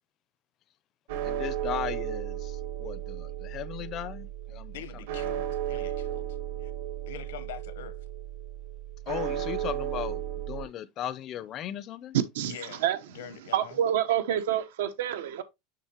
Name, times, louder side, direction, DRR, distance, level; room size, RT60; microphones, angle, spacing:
sound 1, 1.1-10.6, right 11 dB, 65° right, 1.6 m, -34 dB
voice 1, 1.2-5.1 9.1-12.2, left 11 dB, 30° left, 0.5 m, -37 dB
voice 2, 4.7-6.7 7.1-8.0 12.4-12.8 13.1-13.8, left 9 dB, 90° left, 1.0 m, -44 dB
voice 3, 13.5-15.4, right 10 dB, 85° right, 1.0 m, -27 dB
6.6 x 6.1 x 2.9 m
supercardioid pair, 160°, 0 cm